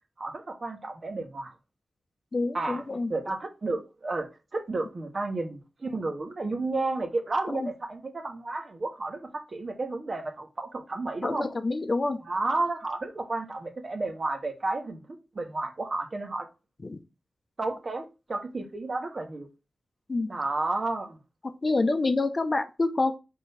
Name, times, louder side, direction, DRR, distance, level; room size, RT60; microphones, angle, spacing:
voice 1, 0.2-1.5 2.5-2.8 3.1-11.5 12.2-16.5 17.6-19.5 20.3-21.2, right 2 dB, 45° right, 1.5 m, -32 dB
voice 2, 2.3-3.1 7.5-7.7 11.2-12.2 16.8-17.0 20.1-20.3 21.6-23.2, left 3 dB, 40° left, 0.8 m, -27 dB
5.1 x 3.9 x 5.8 m
wide cardioid pair, 105°, 0 cm